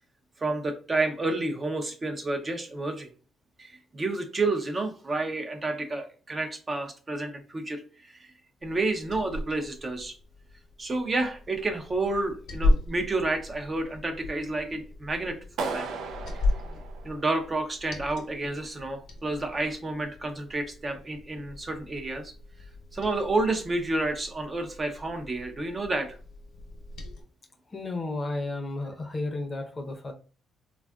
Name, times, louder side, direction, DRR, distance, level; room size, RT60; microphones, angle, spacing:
voice 1, 0.4-3.1 3.6-8.3 8.6-10.2 10.8-15.9 17.0-22.3 22.9-26.2, right 2 dB, 30° right, 5 dB, 0.6 m, -30 dB
Liquid, 8.6-27.2, left 2 dB, 70° left, 0.8 m, -35 dB
Clapping, 15.6-17.6, right 4 dB, 75° right, 0.4 m, -36 dB
voice 2, 27.7-30.1, left 2 dB, 30° left, 4 dB, 0.6 m, -33 dB
3.4 x 2.4 x 2.2 m, 0.37 s
cardioid pair, 90°, 0 cm